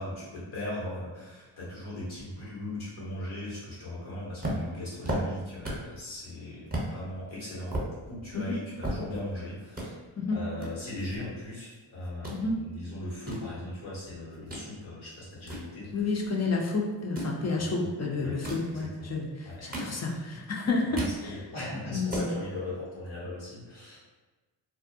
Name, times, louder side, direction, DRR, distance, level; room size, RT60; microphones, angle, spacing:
voice 1, 0.0-7.7 8.1-10.0 10.3-15.9 17.7-17.9 18.2-18.4 18.7-19.1 19.4-19.6 19.9-20.0 20.9-24.0, left 1 dB, 90° left, -7 dB, 1.1 m, -38 dB
sound 1, 4.4-6.0 6.3-6.4 6.7-6.9 7.4-9.4 9.7-9.9 10.6-11.8 12.0-12.4 13.0-14.7 15.1-16.4 17.0-17.4 18.2-18.7 19.4-20.3 20.7-21.2 21.6-21.7 21.9-22.3, right 1 dB, 20° right, 0.8 m, -35 dB
voice 2, 15.9-21.5 21.9-22.3, left 3 dB, 35° left, 0 dB, 0.5 m, -30 dB
2.3 x 2.1 x 2.6 m, 1.2 s
cardioid pair, 50°, 46 cm